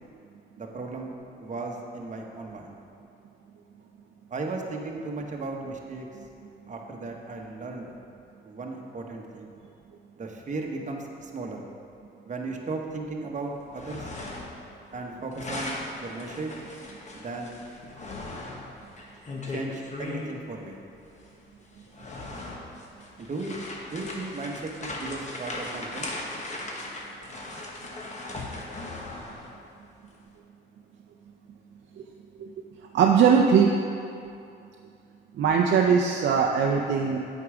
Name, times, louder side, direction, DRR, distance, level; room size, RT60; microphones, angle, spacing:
voice 1, 0.6-1.1 1.4-2.8 4.3-6.1 6.7-7.9 8.4-9.5 10.2-11.6 12.2-14.1 14.9-16.5 17.1-17.6 19.5-20.8 23.2-23.6 23.9-26.1, right 3 dB, 40° right, 1 dB, 1.0 m, -36 dB
sound 1, 13.6-14.7 14.9-20.3 21.2-21.3 21.8-29.6, left 2 dB, 35° left, 1.2 m, -38 dB
voice 2, 32.9-33.7 35.4-37.3, right 6 dB, 65° right, 0 dB, 0.6 m, -20 dB
8.3 x 4.6 x 4.9 m, 2.5 s
cardioid pair, 90°, 20 cm